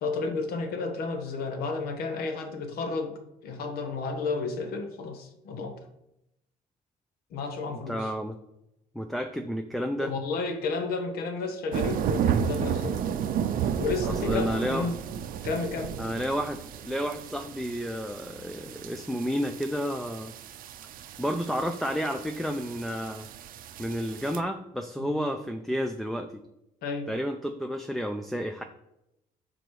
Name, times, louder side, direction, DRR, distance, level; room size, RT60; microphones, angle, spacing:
voice 1, 0.0-5.9 7.3-8.1 10.0-13.0 13.8-15.0 15.4-16.0 25.1-25.2 26.8-27.1, left 4 dB, 80° left, 1.1 m, -32 dB
voice 2, 7.9-8.3 8.9-10.1 14.2-14.9 16.0-20.3 21.2-23.3 23.8-26.3 27.1-28.6, equal, ahead, 0.4 m, -31 dB
sound 1, 11.7-24.4, right 8 dB, 65° right, 0.5 m, -33 dB
6.4 x 4.0 x 4.7 m
cardioid pair, 115°, 16 cm